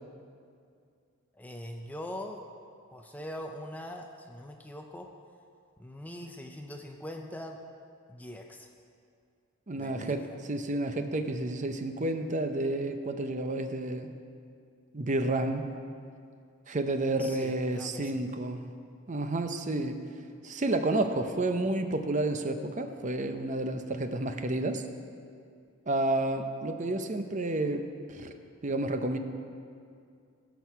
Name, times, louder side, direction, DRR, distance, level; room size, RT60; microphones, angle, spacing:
voice 1, 1.3-2.4 2.9-5.1 5.8-7.6 8.1-8.7 9.7-10.4 17.2-18.2, left 1 dB, 5° left, 3 dB, 0.5 m, -42 dB
voice 2, 9.7-14.1 14.9-15.7 16.7-18.6 19.1-20.0 20.4-24.8 25.9-28.3 28.6-29.2, right 2 dB, 35° right, 7 dB, 0.6 m, -30 dB
15.5 x 6.2 x 5.7 m, 2.4 s
head